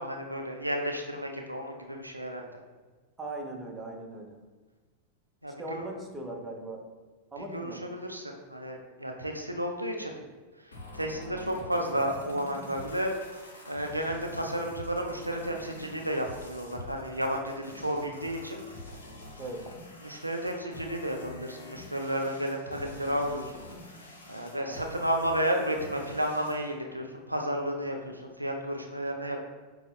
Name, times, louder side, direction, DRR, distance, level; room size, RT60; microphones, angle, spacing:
voice 1, 0.0-2.4 5.4-5.9 7.5-10.1 10.9-13.1 13.7-18.6 20.0-23.5 24.3-29.4, equal, 85° right, 2 dB, 0.3 m, -32 dB
voice 2, 3.2-4.3 5.6-6.8 7.3-7.8 19.4-19.7 24.7-24.9, right 2 dB, 15° right, 0 dB, 0.6 m, -39 dB
sound 1, 10.7-26.7, left 2 dB, 70° left, 0.6 m, -46 dB
5.2 x 2.0 x 2.2 m, 1.3 s
figure-of-eight pair, 90°, 0 cm